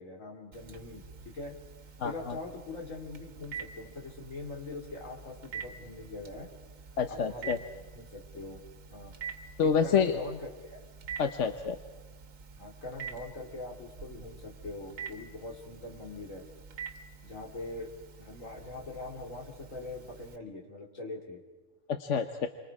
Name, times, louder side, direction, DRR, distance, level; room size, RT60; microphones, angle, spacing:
voice 1, 0.0-1.5 2.0-6.5 7.1-7.6 7.9-8.6 8.9-9.1 9.6-10.8 12.6-16.4 17.2-17.9 18.2-21.4, left 2 dB, 85° left, -1 dB, 3.6 m, -42 dB
Telephone, 0.5-20.4, right 6 dB, 80° right, 1.8 m, -47 dB
voice 2, 2.0-2.3 7.0-7.6 9.6-10.2 11.2-11.8 21.9-22.5, left 6 dB, 65° left, 7 dB, 1.3 m, -28 dB
29.5 x 24.5 x 4.9 m, 1.2 s
omnidirectional pair, 1.3 m